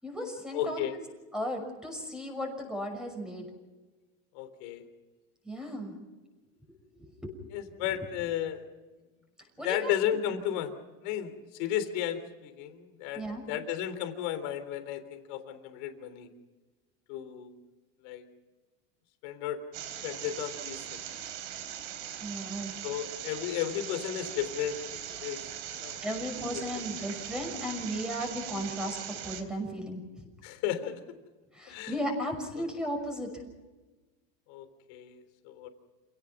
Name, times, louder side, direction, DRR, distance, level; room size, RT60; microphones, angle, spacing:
voice 1, 0.0-0.9 1.3-3.5 5.4-6.0 7.0-7.3 9.6-9.9 13.1-13.4 22.2-22.7 26.0-29.0 29.2-30.3 31.5-33.4, equal, ahead, 3 dB, 6.0 m, -35 dB
voice 2, 0.5-0.9 4.3-4.8 7.5-8.6 9.6-10.7 11.0-13.2 13.5-16.3 17.1-17.5 18.0-18.2 19.2-19.6 20.0-21.0 22.8-25.4 25.8-26.0 26.5-26.6 30.4-31.0 31.7-31.9 34.5-35.7, left 10 dB, 70° left, 9 dB, 3.6 m, -34 dB
sound 1, 19.7-29.4, right 10 dB, 60° right, 3.8 m, -40 dB
28.0 x 18.0 x 6.0 m, 1.2 s
supercardioid pair, 140°, 35 cm